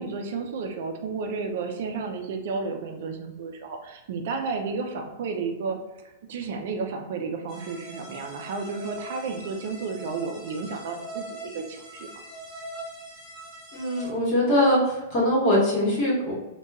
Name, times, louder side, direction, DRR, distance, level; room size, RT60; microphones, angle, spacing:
voice 1, 0.0-5.8 6.3-12.2, right 4 dB, 60° right, 4 dB, 0.3 m, -32 dB
sound 1, 7.5-14.1, right 1 dB, 5° left, 1.0 m, -41 dB
voice 2, 13.7-16.3, left 1 dB, 35° left, -6 dB, 1.0 m, -22 dB
2.8 x 2.2 x 2.3 m, 0.99 s
supercardioid pair, 155°, 0 cm